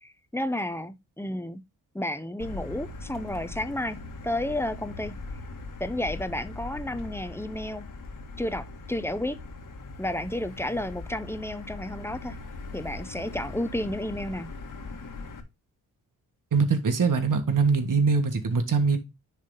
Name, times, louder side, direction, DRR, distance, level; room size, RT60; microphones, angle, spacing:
voice 1, 0.0-1.6 1.9-5.1 5.8-7.9 8.4-9.4 10.0-12.4 12.7-14.5, left 1 dB, 5° left, 0.9 m, -32 dB
Motor vehicle (road), 2.4-15.4, left 3 dB, 55° left, 1.6 m, -40 dB
voice 2, 16.5-19.0, right 5 dB, 55° right, 1.6 m, -23 dB
9.6 x 3.6 x 4.0 m
cardioid pair, 60°, 38 cm